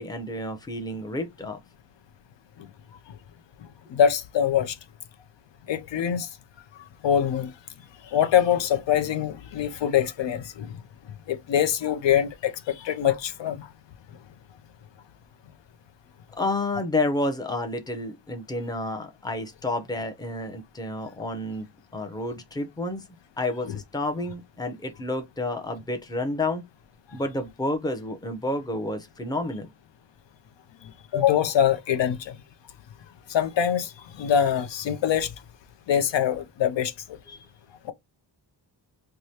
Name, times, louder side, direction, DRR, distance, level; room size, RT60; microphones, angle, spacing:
voice 1, 0.0-1.6 16.4-21.7 21.9-23.0 23.4-26.6 27.1-29.7 37.3-37.4, left 2 dB, 10° left, 0.6 m, -30 dB
voice 2, 3.9-4.8 5.7-6.3 7.0-7.5 8.0-10.8 11.3-13.7 23.7-23.8 31.1-32.4 33.3-35.3 35.9-36.9, left 9 dB, 75° left, 0.6 m, -24 dB
4.7 x 2.2 x 2.7 m
wide cardioid pair, 125°, 45 cm